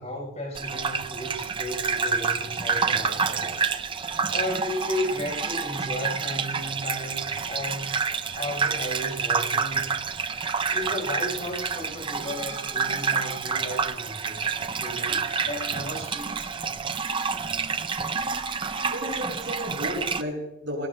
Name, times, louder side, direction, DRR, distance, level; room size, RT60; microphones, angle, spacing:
voice 1, 0.0-3.7 4.3-8.0 8.3-10.0 10.7-16.5, left 1 dB, 35° left, -1 dB, 4.7 m, -34 dB
Gurgling / Bathtub (filling or washing), 0.5-20.2, right 5 dB, 25° right, 0.4 m, -28 dB
voice 2, 18.9-20.9, equal, 65° right, -2 dB, 6.5 m, -33 dB
22.5 x 19.0 x 2.2 m, 0.90 s
head